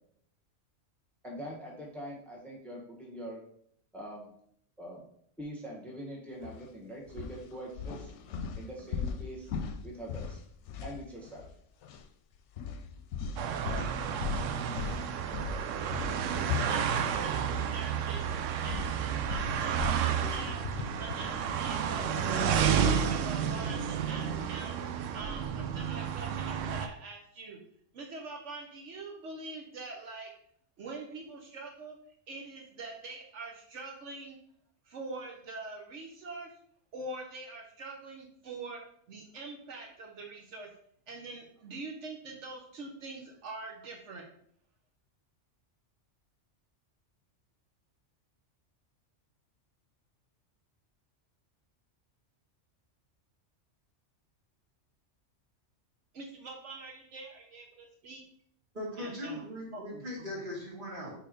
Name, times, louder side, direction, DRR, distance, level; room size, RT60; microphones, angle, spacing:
voice 1, 1.2-3.4 3.9-4.3 4.8-5.0 5.4-8.1 8.5-9.5 9.8-10.4 10.8-11.5, right 1 dB, ahead, -3 dB, 1.2 m, -43 dB
sound 1, 6.4-6.6 7.1-11.6 11.8-12.0 12.6-17.7 18.0-21.4, left 6 dB, 75° left, 0.9 m, -39 dB
sound 2, 13.4-26.9, right 8 dB, 90° right, 0.9 m, -31 dB
voice 2, 16.2-20.6 21.0-24.8 25.1-27.6 27.9-30.3 30.8-32.0 32.3-34.4 34.9-36.5 36.9-38.8 39.1-40.7 41.1-44.2 56.1-58.2 59.0-60.1, right 3 dB, 75° right, 0 dB, 1.2 m, -44 dB
voice 3, 58.7-61.1, left 1 dB, 40° right, -5 dB, 2.3 m, -39 dB
4.4 x 4.1 x 5.1 m, 0.65 s
omnidirectional pair, 1.2 m